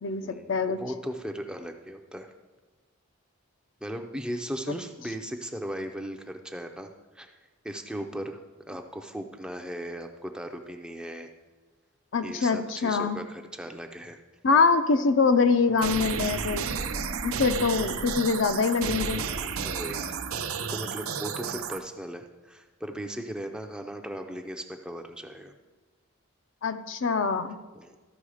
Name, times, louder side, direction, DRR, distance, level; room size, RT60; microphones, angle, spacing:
voice 1, 0.2-2.3 3.8-6.9 7.1-7.4 7.6-8.4 8.7-11.3 12.2-14.2 19.6-20.1 20.6-25.5 27.7-28.0, equal, 5° right, 4 dB, 0.5 m, -37 dB
voice 2, 12.1-13.2 14.4-16.7 17.2-19.2 26.6-27.6, left 4 dB, 60° left, 9 dB, 0.5 m, -24 dB
sound 1, 15.8-21.8, right 6 dB, 80° right, 0.7 m, -32 dB
13.5 x 5.4 x 4.9 m, 1.3 s
head